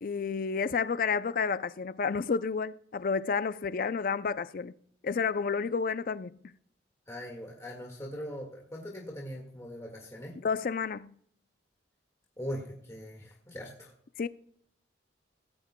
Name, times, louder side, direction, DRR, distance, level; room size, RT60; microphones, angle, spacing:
voice 1, 0.0-4.7 5.0-6.5 10.4-11.2 14.2-14.3, left 5 dB, 50° left, 0.4 m, -30 dB
voice 2, 7.1-10.4 12.4-13.9, equal, 15° left, 1.8 m, -41 dB
17.0 x 14.5 x 2.2 m
head